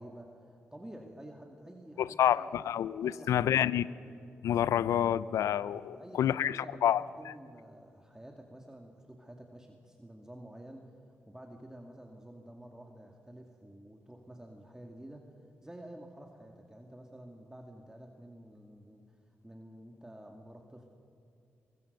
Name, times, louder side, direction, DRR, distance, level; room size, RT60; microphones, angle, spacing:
voice 1, 0.0-3.8 5.9-10.9 11.3-15.3 15.6-20.9, right 1 dB, 10° right, 2 dB, 2.3 m, -50 dB
voice 2, 2.0-3.8 4.4-7.3, left 10 dB, 80° left, 19 dB, 0.5 m, -28 dB
23.0 x 20.0 x 6.8 m, 2.5 s
supercardioid pair, 50°, 5 cm